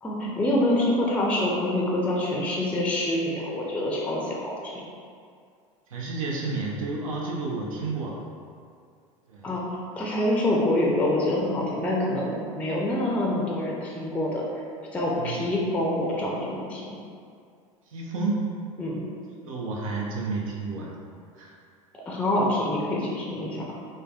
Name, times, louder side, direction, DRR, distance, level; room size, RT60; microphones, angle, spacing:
voice 1, 0.0-4.7 9.4-14.4 14.9-17.0 18.8-19.0 22.1-23.8, left 1 dB, 10° left, -3 dB, 0.4 m, -26 dB
voice 2, 5.9-8.2 9.3-9.5 15.1-15.4 17.9-18.5 19.4-21.0 21.3-21.5, right 3 dB, 80° right, -3 dB, 0.4 m, -31 dB
3.2 x 2.1 x 2.3 m, 2.3 s
hypercardioid pair, 85°, 17 cm